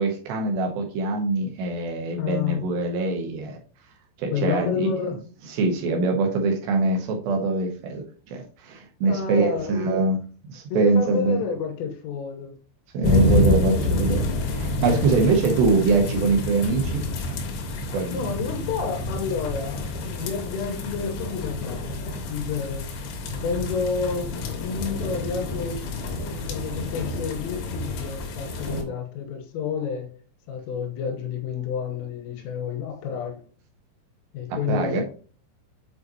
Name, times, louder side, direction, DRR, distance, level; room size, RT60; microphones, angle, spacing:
voice 1, 0.0-3.6 4.2-4.9 5.5-10.2 10.5-11.4 12.9-17.0 17.9-18.3 34.5-35.0, right 3 dB, 75° right, 2.7 m, -23 dB
voice 2, 2.2-2.6 4.3-5.2 9.0-9.9 10.7-12.5 14.9-15.3 18.1-21.8 22.3-22.9 23.4-30.1 30.5-33.4 34.3-35.0, left 6 dB, 90° left, 3.7 m, -30 dB
sound 1, 13.0-28.8, left 2 dB, 70° left, 2.9 m, -28 dB
7.6 x 4.9 x 2.9 m
omnidirectional pair, 5.7 m